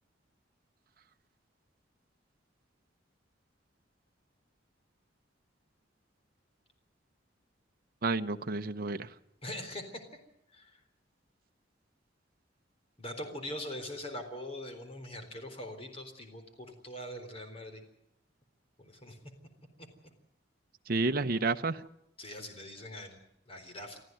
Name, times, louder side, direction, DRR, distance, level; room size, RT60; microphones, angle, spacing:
voice 1, 8.0-9.1 20.9-21.9, right 3 dB, 50° right, 0.8 m, -30 dB
voice 2, 9.4-10.1 10.5-10.7 13.0-17.8 18.8-19.2 20.0-20.1 22.2-23.2 23.5-24.0, left 1 dB, 30° left, 3.9 m, -42 dB
24.5 x 14.5 x 9.3 m
head